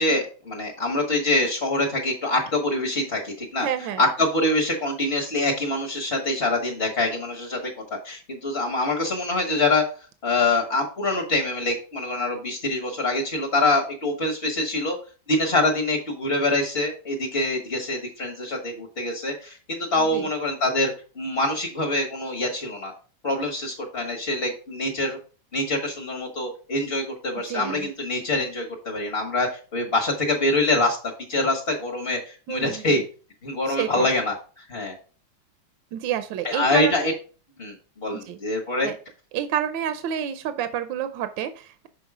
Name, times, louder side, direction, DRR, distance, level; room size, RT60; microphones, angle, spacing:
voice 1, 0.0-3.7 4.0-9.8 10.2-15.0 15.3-22.9 23.2-25.2 25.5-31.0 31.3-33.0 33.4-34.9 36.4-37.1 37.6-38.9, left 2 dB, 35° left, 0 dB, 1.2 m, -25 dB
voice 2, 3.6-4.0 20.0-20.3 27.5-27.9 32.5-32.9 33.7-34.1 35.9-37.1 38.3-38.4 38.8-39.0 39.3-41.9, right 10 dB, 75° right, 10 dB, 1.3 m, -29 dB
6.3 x 4.6 x 4.7 m, 0.38 s
omnidirectional pair, 2.2 m